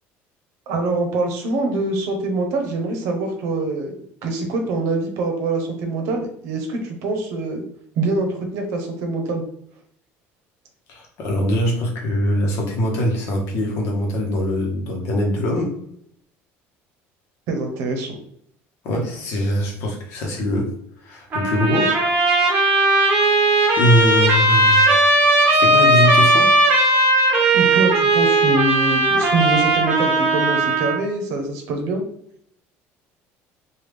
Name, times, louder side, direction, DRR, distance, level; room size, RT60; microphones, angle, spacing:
voice 1, 0.7-3.9 4.2-7.6 8.0-9.4 17.5-18.2 27.5-32.0, right 2 dB, 65° right, 3 dB, 0.8 m, -24 dB
voice 2, 10.9-15.8 18.8-20.7 21.0-21.9 23.8-25.2 25.5-26.5, equal, 55° left, 1 dB, 0.9 m, -22 dB
Trumpet, 21.3-31.0, right 2 dB, 35° right, 0.9 m, -17 dB
3.3 x 2.3 x 3.3 m, 0.68 s
cardioid pair, 175°, 5 cm